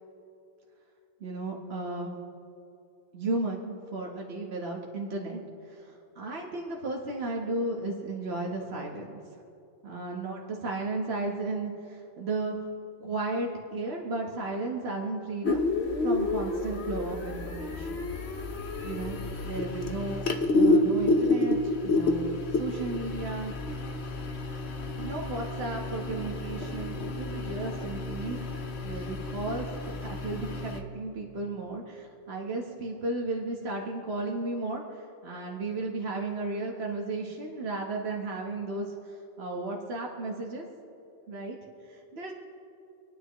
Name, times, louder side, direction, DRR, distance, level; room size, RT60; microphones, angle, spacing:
voice 1, 1.2-2.2 3.1-9.4 9.8-12.6 13.0-15.6 16.0-18.0 18.8-19.2 19.4-20.3 20.6-23.5 25.0-28.4 28.8-40.7 41.3-41.6 41.8-42.3, right 2 dB, 75° right, -1 dB, 1.5 m, -34 dB
sound 1, 15.4-30.8, left 2 dB, 85° left, 1.2 m, -29 dB
27.0 x 9.9 x 3.0 m, 2.7 s
omnidirectional pair, 1.1 m